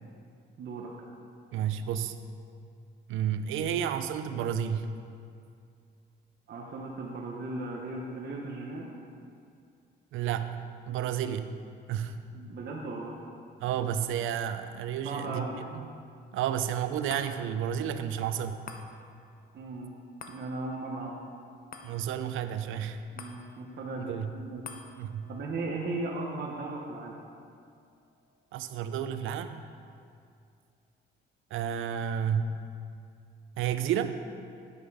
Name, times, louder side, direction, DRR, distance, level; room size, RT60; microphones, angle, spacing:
voice 1, 0.6-0.9 6.5-8.9 12.3-13.1 15.0-15.7 19.5-19.9 20.3-21.2 23.1-24.6 25.3-27.2, right 2 dB, 55° right, -2 dB, 1.0 m, -37 dB
voice 2, 1.5-2.2 3.1-4.9 10.1-11.6 11.9-12.2 13.6-15.8 16.3-18.6 21.8-23.0 24.0-24.3 25.0-25.3 28.5-29.6 31.5-32.6 33.6-34.1, right 9 dB, 85° right, 10 dB, 0.5 m, -31 dB
sound 1, 17.1-29.7 30.1-30.2, left 5 dB, 45° left, 0.8 m, -52 dB
10.0 x 5.2 x 4.9 m, 2.4 s
cardioid pair, 90°, 20 cm